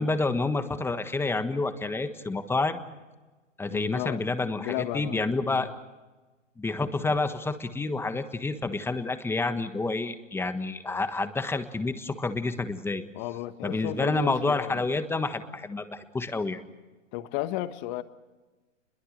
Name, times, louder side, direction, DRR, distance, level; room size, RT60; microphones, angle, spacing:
voice 1, 0.0-2.8 3.6-5.7 6.6-13.0 13.6-16.6, left 3 dB, 5° left, 9 dB, 1.4 m, -29 dB
voice 2, 3.7-4.2 4.6-5.7 13.1-14.8 17.1-18.0, left 14 dB, 35° left, 11 dB, 1.5 m, -34 dB
29.0 x 22.0 x 6.6 m, 1.2 s
hypercardioid pair, 125°, 38 cm